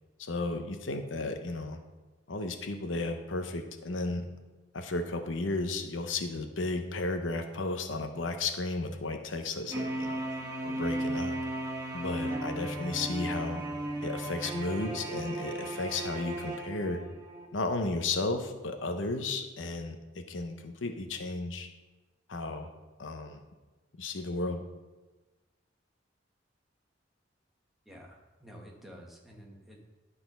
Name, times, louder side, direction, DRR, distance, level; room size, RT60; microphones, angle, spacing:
voice 1, 0.2-1.8 2.3-4.3 4.7-10.2 10.6-11.4 11.9-13.6 14.0-17.0 17.5-21.7 22.3-22.7 23.0-23.4 24.0-24.6, left 2 dB, 90° left, 6 dB, 0.8 m, -34 dB
sound 1, 9.7-17.4, right 1 dB, 15° right, 1.5 m, -35 dB
voice 2, 27.9-29.8, equal, ahead, -2 dB, 1.4 m, -50 dB
11.5 x 4.1 x 5.4 m, 1.2 s
head